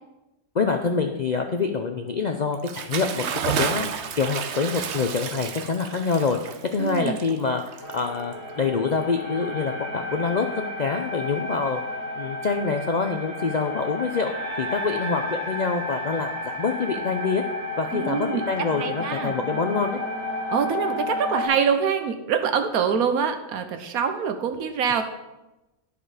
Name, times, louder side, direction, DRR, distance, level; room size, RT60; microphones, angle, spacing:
voice 1, 0.5-11.8 12.2-14.3 14.6-17.4 17.8-20.0, left 4 dB, 80° left, 5 dB, 0.3 m, -26 dB
Bathtub (filling or washing) / Splash splatter, 2.5-8.5, right 7 dB, 60° right, 0.9 m, -31 dB
voice 2, 6.8-7.2 17.9-18.4 18.8-19.3 20.5-25.0, right 7 dB, 75° right, 7 dB, 1.4 m, -25 dB
sound 1, 7.8-21.5, left 2 dB, 45° left, 2.5 m, -32 dB
10.0 x 6.8 x 4.9 m, 0.99 s
omnidirectional pair, 1.6 m